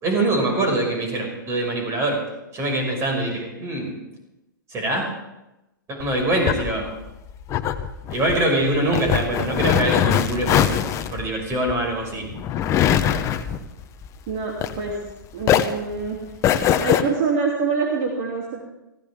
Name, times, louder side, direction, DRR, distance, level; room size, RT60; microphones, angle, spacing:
voice 1, 0.0-2.2 2.5-4.0 4.7-5.1 5.9-6.9 8.1-10.8 11.1-12.3, right 1 dB, 25° right, 1 dB, 6.0 m, -23 dB
sound 1, 6.0-15.1 15.4-17.0, left 10 dB, 25° left, 0.9 m, -22 dB
voice 2, 14.3-14.9 15.3-16.2 16.8-18.6, right 5 dB, 50° right, -2 dB, 3.2 m, -25 dB
19.5 x 16.5 x 3.7 m, 0.97 s
hypercardioid pair, 125°, 11 cm